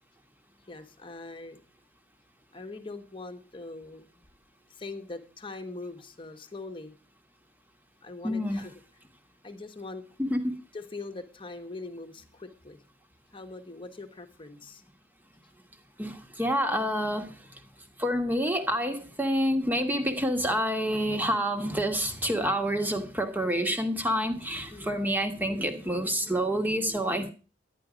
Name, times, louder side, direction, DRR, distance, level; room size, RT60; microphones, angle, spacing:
voice 1, 0.6-1.6 2.5-4.2 4.7-6.9 8.0-8.7 9.4-10.0 10.7-12.8 13.3-14.8 24.7-25.0, left 3 dB, 25° left, 6 dB, 1.3 m, -42 dB
voice 2, 8.2-8.6 10.2-10.6 16.0-17.3 18.0-27.3, equal, 10° right, 6 dB, 1.4 m, -28 dB
11.0 x 10.0 x 5.1 m, 0.36 s
head